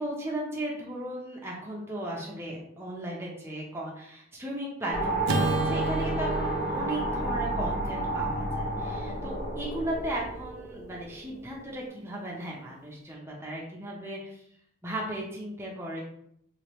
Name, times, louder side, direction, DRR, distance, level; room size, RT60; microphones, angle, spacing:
voice 1, 0.0-14.4 14.8-16.0, right 1 dB, 10° right, -3 dB, 0.7 m, -36 dB
sound 1, 4.9-11.3, right 1 dB, 50° left, 0.9 m, -31 dB
Acoustic guitar / Strum, 5.2-9.7, right 4 dB, 60° right, 0.4 m, -33 dB
3.3 x 3.3 x 3.0 m, 0.71 s
head